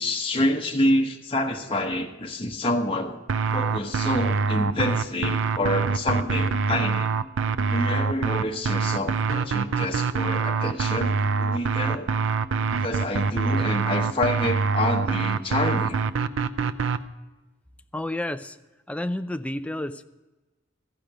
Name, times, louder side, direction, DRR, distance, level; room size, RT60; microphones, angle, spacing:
voice 1, 0.0-3.2 3.5-7.1 7.7-12.1 12.8-16.0, left 1 dB, 25° left, 0 dB, 1.0 m, -27 dB
sound 1, 3.3-17.0, right 5 dB, 80° right, 0.5 m, -25 dB
voice 2, 17.9-18.6 18.9-20.0, left 1 dB, 5° left, 9 dB, 0.4 m, -30 dB
14.5 x 5.1 x 8.9 m, 1.1 s
head